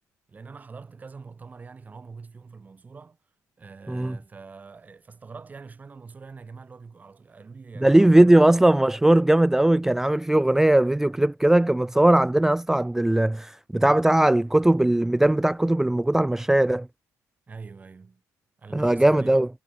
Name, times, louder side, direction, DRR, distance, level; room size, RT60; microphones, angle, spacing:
voice 1, 0.3-3.2 3.6-8.5 17.5-18.2 18.6-19.5, right 4 dB, 25° right, 6.3 m, -44 dB
voice 2, 7.8-16.9 18.7-19.5, right 1 dB, 5° right, 0.3 m, -19 dB
cardioid pair, 110°, 6 cm